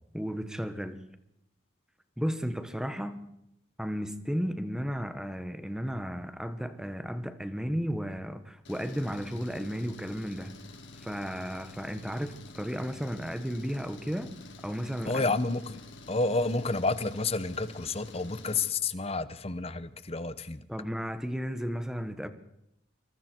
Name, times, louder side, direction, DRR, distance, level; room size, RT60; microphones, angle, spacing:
voice 1, 0.1-1.0 2.2-3.3 3.8-10.5 11.0-14.3 14.6-15.3 20.7-22.3, equal, 5° right, 1.3 m, -34 dB
Engine, 8.6-18.7, left 2 dB, 65° left, 3.7 m, -49 dB
voice 2, 15.1-15.8 16.1-20.6, left 3 dB, 30° left, 1.0 m, -30 dB
26.5 x 23.5 x 4.6 m
head